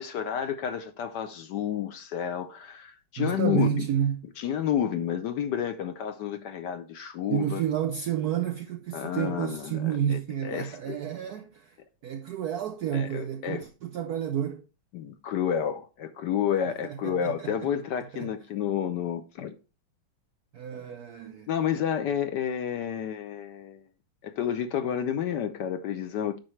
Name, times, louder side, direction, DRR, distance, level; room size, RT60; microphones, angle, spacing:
voice 1, 0.0-3.7 4.4-7.6 8.9-9.8 10.1-11.0 12.9-13.6 14.9-19.5 21.5-23.8 24.2-26.4, left 9 dB, 70° left, 1.1 m, -30 dB
voice 2, 3.2-4.3 7.3-11.8 12.0-14.7 16.8-17.7 18.1-18.3 20.5-21.5, right 9 dB, 75° right, 0.9 m, -30 dB
8.9 x 5.9 x 3.1 m
omnidirectional pair, 2.2 m